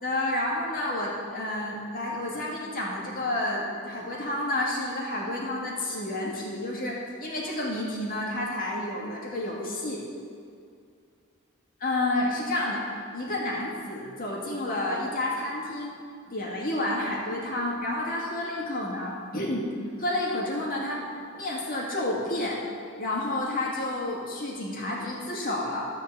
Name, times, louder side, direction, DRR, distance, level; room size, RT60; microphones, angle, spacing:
voice 1, 0.0-10.1 11.8-15.9 16.3-21.1 21.3-22.6 23.0-25.9, left 1 dB, 40° left, -4 dB, 2.2 m, -30 dB
13.5 x 4.6 x 8.2 m, 2.4 s
head